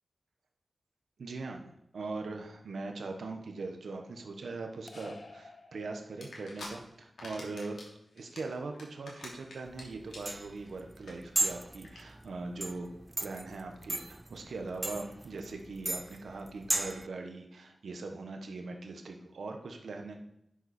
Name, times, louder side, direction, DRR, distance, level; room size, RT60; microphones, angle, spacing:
voice 1, 1.2-7.8 8.1-12.9 13.2-20.2, right 3 dB, 90° right, 4 dB, 1.3 m, -41 dB
sound 1, 4.9-6.5, left 3 dB, 50° left, 1.0 m, -51 dB
sound 2, 6.2-6.7 7.0-7.9 8.2-9.8 10.1-10.4 10.7-10.8 11.0-11.1 11.4-11.5 11.8-12.0, left 2 dB, 80° left, 3.0 m, -45 dB
sound 3, 9.7-17.1, right 1 dB, 20° right, 0.3 m, -36 dB
11.0 x 7.8 x 4.4 m, 0.79 s
wide cardioid pair, 110°, 0 cm